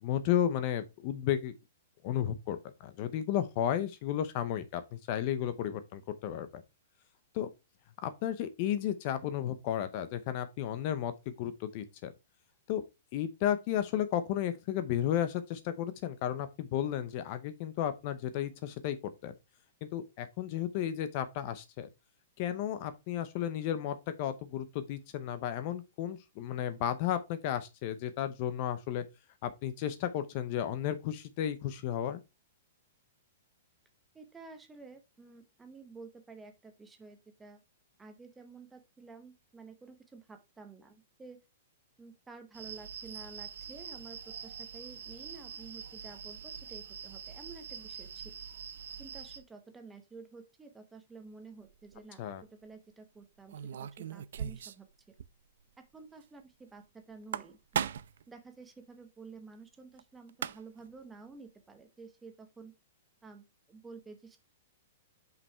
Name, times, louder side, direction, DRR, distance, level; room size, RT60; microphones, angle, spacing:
voice 1, 0.0-1.5 2.0-6.6 7.3-7.5 8.0-11.1 11.4-12.1 12.7-12.8 13.1-19.0 19.2-19.3 19.8-21.9 22.4-29.0 29.4-32.2 52.2-52.4, left 10 dB, 35° left, 0.6 m, -33 dB
voice 2, 34.1-37.6 38.0-41.4 42.0-48.3 49.0-52.2 52.5-55.1 55.8-57.9 58.3-62.7 63.2-64.4, right 4 dB, 5° right, 0.9 m, -51 dB
sound 1, 42.5-49.4, right 7 dB, 85° right, 2.0 m, -45 dB
sound 2, 51.7-52.0 53.5-54.9 55.2-55.3 55.6-55.7 57.1-58.2 60.0-60.1 60.3-60.9, right 9 dB, 70° right, 0.5 m, -37 dB
5.8 x 5.5 x 4.5 m
hypercardioid pair, 170°, 0 cm